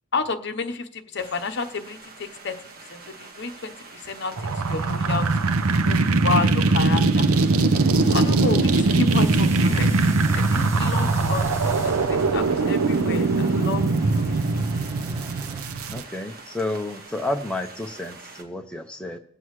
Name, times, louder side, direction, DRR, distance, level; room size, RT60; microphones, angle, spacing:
voice 1, 0.1-5.3 5.8-7.3 8.1-10.0 10.3-14.2, left 4 dB, 50° left, 7 dB, 0.9 m, -30 dB
sound 1, 1.2-18.4, right 3 dB, 40° right, 1.6 m, -45 dB
sound 2, 4.4-16.0, right 3 dB, 80° right, 0.6 m, -21 dB
sound 3, 8.0-15.6, right 1 dB, 15° right, 1.0 m, -40 dB
voice 2, 15.9-19.2, left 2 dB, 5° left, 2 dB, 0.7 m, -31 dB
21.5 x 7.7 x 3.1 m, 0.66 s
head